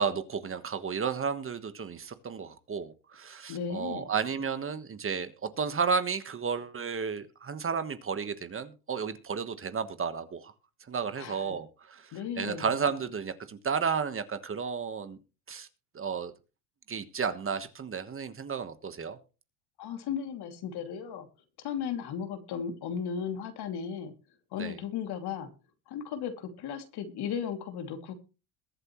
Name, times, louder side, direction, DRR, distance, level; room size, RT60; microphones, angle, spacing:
voice 1, 0.0-10.5 10.9-15.2 15.5-15.7 15.9-16.3 16.9-19.2 24.6-24.8, right 6 dB, 30° right, 11 dB, 1.3 m, -32 dB
voice 2, 3.5-4.1 11.2-11.6 12.1-12.7 19.8-21.3 21.6-24.1 24.5-25.5 25.9-28.1, left 7 dB, 60° left, 6 dB, 2.7 m, -35 dB
22.0 x 7.9 x 3.1 m, 0.33 s
supercardioid pair, 100°, 44 cm